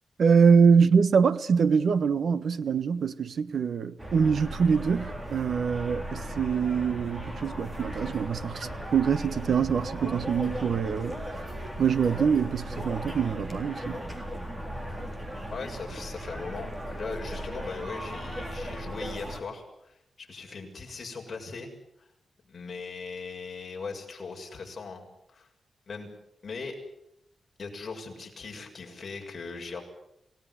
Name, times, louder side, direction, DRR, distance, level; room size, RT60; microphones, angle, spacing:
voice 1, 0.2-11.4 11.8-14.0, right 6 dB, 60° right, 1.3 m, -24 dB
sound 1, 4.0-19.4, equal, 15° right, 3.8 m, -37 dB
voice 2, 15.5-21.7 22.0-22.1 22.5-25.5 25.9-26.1 26.4-26.8 27.6-29.8, left 4 dB, 35° left, 6.8 m, -39 dB
28.5 x 18.0 x 9.8 m
wide cardioid pair, 165°, 0 cm